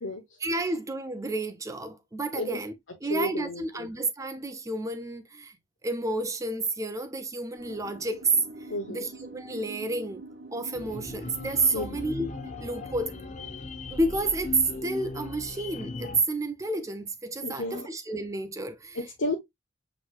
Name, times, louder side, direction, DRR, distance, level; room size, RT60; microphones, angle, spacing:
voice 1, 0.4-2.7 3.0-5.5 5.8-8.3 8.9-10.2 10.5-12.3 12.6-13.1 13.9-19.0, right 2 dB, 15° right, 0.4 m, -30 dB
voice 2, 3.1-3.9 8.7-9.1 11.7-12.1 17.4-17.9 18.9-19.4, left 1 dB, 85° left, 0.9 m, -32 dB
sound 1, 7.6-16.9, right 2 dB, 80° right, 0.9 m, -47 dB
sound 2, 10.7-16.2, left 3 dB, 40° left, 0.7 m, -38 dB
6.2 x 3.0 x 2.2 m
head